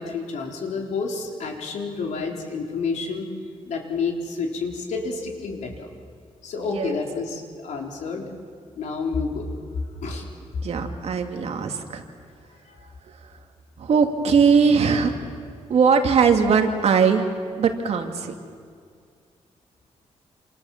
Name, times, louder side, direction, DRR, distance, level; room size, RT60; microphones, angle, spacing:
voice 1, 0.0-3.3 3.7-5.9 6.4-8.2 8.8-9.5 10.0-10.2 12.7-12.9, left 4 dB, 80° left, 1 dB, 4.2 m, -29 dB
voice 2, 6.6-7.0 10.6-12.0 13.8-15.1 15.7-17.3 17.6-18.3, right 6 dB, 60° right, 4 dB, 2.5 m, -20 dB
28.5 x 27.5 x 7.4 m, 2.2 s
wide cardioid pair, 160°, 12 cm